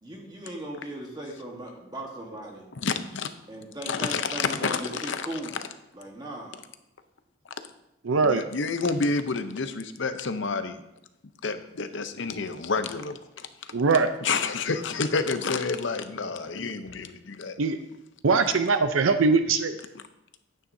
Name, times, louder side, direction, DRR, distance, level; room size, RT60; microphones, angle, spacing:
voice 1, 0.0-2.7 3.5-5.6 5.9-6.6, right 1 dB, 20° right, -1 dB, 1.3 m, -38 dB
voice 2, 2.8-3.3 3.9-5.4 8.2-10.8 11.4-13.7 14.2-17.6, left 4 dB, 65° left, 9 dB, 0.7 m, -29 dB
voice 3, 8.0-8.4 13.7-14.1 17.6-17.8 18.2-19.8, right 4 dB, 85° right, 9 dB, 0.6 m, -22 dB
11.0 x 9.2 x 2.7 m, 0.86 s
head